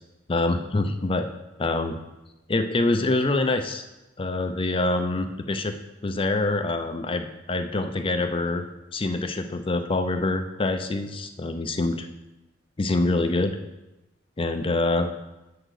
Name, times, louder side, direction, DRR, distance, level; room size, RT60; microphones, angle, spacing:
voice 1, 0.3-1.3 1.6-2.0 2.5-3.8 4.2-5.7 6.0-8.6 8.9-12.1 12.8-13.6 14.4-15.1, left 2 dB, 30° left, 7 dB, 0.5 m, -25 dB
7.7 x 3.8 x 6.3 m, 0.99 s
head